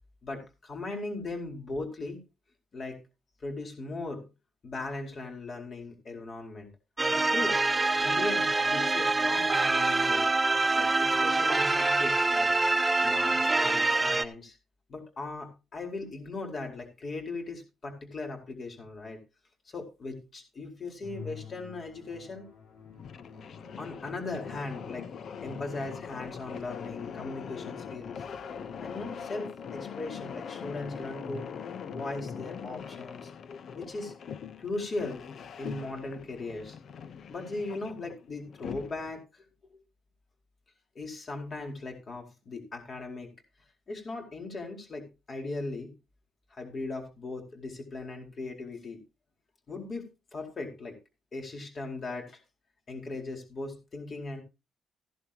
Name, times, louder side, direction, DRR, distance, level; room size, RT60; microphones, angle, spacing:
voice 1, 0.2-2.2 2.7-3.0 3.4-4.2 4.6-6.7 7.1-7.6 8.0-10.3 10.8-12.5 13.0-14.6 14.9-19.2 19.7-22.5 23.8-25.1 25.4-28.2 28.8-31.5 31.9-33.3 33.7-34.1 34.6-35.2 35.6-36.8 37.3-39.4 40.9-43.3 43.9-45.9 46.5-49.0 49.7-51.0 51.3-52.4 52.9-54.4, left 3 dB, 45° left, 2 dB, 4.5 m, -38 dB
sound 1, 7.0-14.2, right 3 dB, 20° right, 1.0 m, -25 dB
Musical instrument, 21.0-29.5, left 6 dB, 85° left, 7.9 m, -49 dB
sound 2, 22.8-39.2, left 7 dB, 60° left, 0.9 m, -42 dB
15.0 x 11.0 x 2.9 m, 0.28 s
cardioid pair, 90°, 0 cm